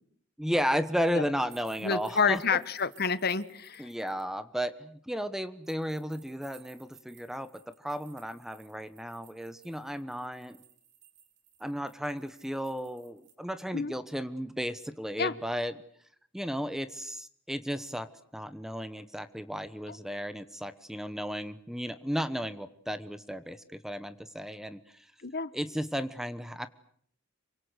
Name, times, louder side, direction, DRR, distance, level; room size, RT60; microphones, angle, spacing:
voice 1, 0.4-2.6 3.8-10.6 11.6-15.7 16.3-18.1 18.3-25.1 25.5-26.7, equal, ahead, 13 dB, 1.1 m, -34 dB
sound 1, 1.5-4.2 5.6-13.3, right 9 dB, 60° right, 4.8 m, -59 dB
voice 2, 1.8-3.9 13.7-13.9 15.2-15.3 25.2-25.5, left 5 dB, 50° left, 15 dB, 1.3 m, -28 dB
27.5 x 24.5 x 8.1 m, 0.63 s
head